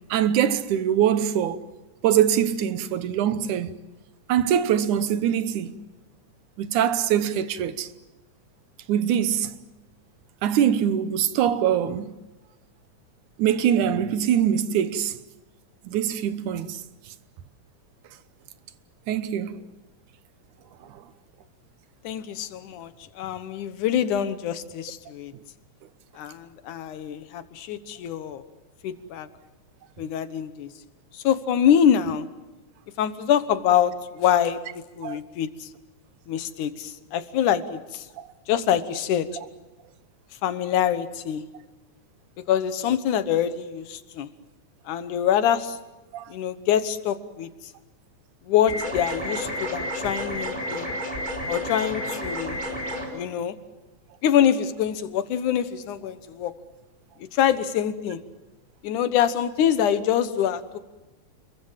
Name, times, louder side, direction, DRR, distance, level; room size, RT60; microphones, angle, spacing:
voice 1, 0.1-1.7 2.0-3.7 4.3-5.7 6.6-7.9 8.9-9.5 10.4-12.1 13.4-15.2 15.9-16.8 19.1-19.6 20.9-21.0 35.0-35.2 38.2-38.3 46.1-46.3, right 9 dB, 80° right, 2.5 m, -23 dB
voice 2, 22.0-25.3 26.2-28.4 28.8-29.3 30.0-30.7 31.1-32.3 33.0-35.7 36.3-38.1 38.5-39.3 40.4-41.4 42.5-44.3 44.9-45.8 46.3-47.5 48.5-51.0 51.5-52.6 53.1-53.6 54.2-56.5 57.3-58.2 58.8-60.8, left 9 dB, 80° left, 2.7 m, -25 dB
sound 1, 48.7-53.1, equal, 15° right, 4.8 m, -31 dB
29.5 x 22.5 x 7.4 m
omnidirectional pair, 3.5 m